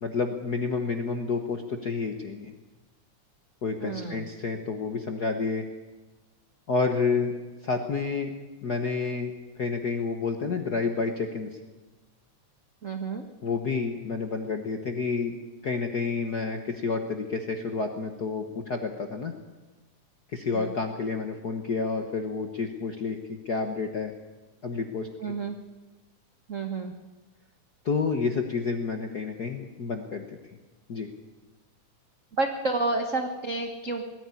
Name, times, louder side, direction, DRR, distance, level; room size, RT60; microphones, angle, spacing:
voice 1, 0.0-2.5 3.6-5.6 6.7-7.3 7.6-8.3 8.6-9.3 9.6-11.5 13.4-15.4 15.6-19.3 20.3-24.1 24.6-25.3 27.8-30.4 30.9-31.1, left 4 dB, 60° left, 4 dB, 1.0 m, -29 dB
voice 2, 3.8-4.3 12.8-13.3 20.5-20.8 25.2-25.5 26.5-26.9 32.4-34.0, right 3 dB, 75° right, 5 dB, 0.7 m, -30 dB
20.0 x 14.0 x 9.8 m, 1.2 s
omnidirectional pair, 3.6 m